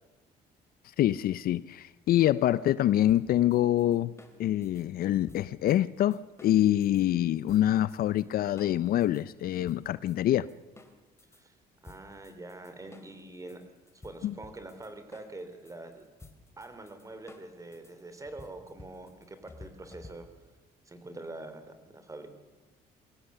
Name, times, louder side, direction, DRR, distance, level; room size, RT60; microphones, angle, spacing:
voice 1, 1.0-4.1 4.4-10.5 14.2-14.3, left 12 dB, 60° left, 0.6 m, -25 dB
sound 1, 3.1-7.0 7.5-8.2 8.6-11.4 11.8-20.5, left 2 dB, 15° left, 2.7 m, -53 dB
voice 2, 11.8-13.6 13.9-16.0 16.6-20.3 20.8-22.3, right 2 dB, 20° right, 3.4 m, -45 dB
22.5 x 17.0 x 6.8 m
cardioid pair, 110°, 17 cm